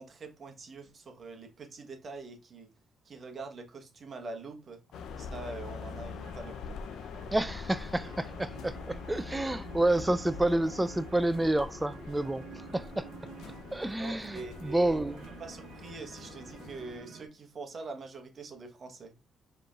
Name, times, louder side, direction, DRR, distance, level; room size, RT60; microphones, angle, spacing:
voice 1, 0.0-2.7 3.0-4.8 5.2-6.8 14.0-19.2, right 3 dB, 45° right, 1.1 m, -44 dB
sound 1, 4.9-17.0, left 5 dB, 80° left, 0.5 m, -44 dB
sound 2, 6.2-17.3, right 5 dB, 70° right, 1.0 m, -50 dB
voice 2, 7.3-12.5 12.7-13.1 13.7-15.3, right 1 dB, 10° right, 0.3 m, -29 dB
4.8 x 3.1 x 2.3 m
cardioid pair, 90°, 0 cm